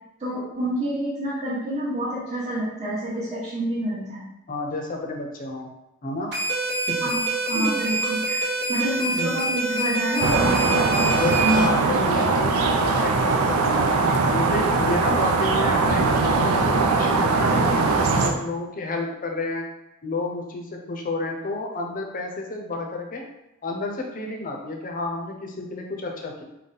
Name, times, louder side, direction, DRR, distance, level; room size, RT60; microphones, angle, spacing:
voice 1, 0.2-4.3 7.0-7.2 7.5-8.4 8.7-11.9 14.1-14.2, right 1 dB, 30° right, -10 dB, 1.0 m, -28 dB
voice 2, 4.5-5.7 6.0-6.3 6.9-7.1 7.5-7.8 9.1-9.3 11.1-13.9 14.3-19.6 20.0-23.3 23.6-26.4, left 2 dB, 40° left, 2 dB, 0.6 m, -30 dB
sound 1, 6.3-11.7, right 2 dB, 55° right, 1.0 m, -26 dB
sound 2, 10.2-18.3, right 3 dB, 90° right, 0.5 m, -21 dB
3.9 x 2.2 x 3.9 m, 0.89 s
head